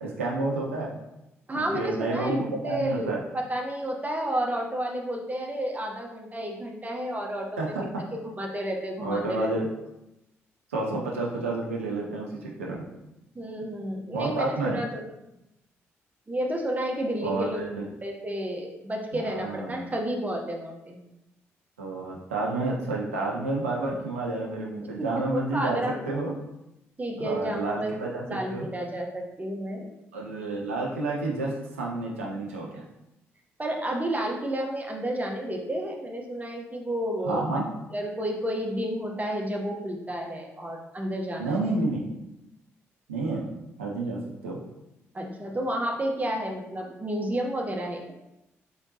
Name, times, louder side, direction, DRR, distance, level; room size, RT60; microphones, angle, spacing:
voice 1, 0.0-1.0 1.5-3.2 7.6-8.0 9.0-9.7 10.7-12.9 14.1-14.8 17.2-17.8 19.1-20.0 21.8-26.3 27.2-28.7 30.1-32.8 37.2-37.7 41.4-42.0 43.1-43.5 43.8-44.6, right 2 dB, 85° right, -2 dB, 0.5 m, -30 dB
voice 2, 1.5-7.8 8.1-9.5 13.3-15.0 16.3-17.6 18.0-21.0 25.1-26.0 27.0-27.9 28.3-29.9 33.6-37.6 37.9-41.6 45.1-48.1, right 1 dB, 20° right, 0 dB, 0.9 m, -31 dB
3.7 x 3.5 x 2.8 m, 0.89 s
figure-of-eight pair, 40°, 7 cm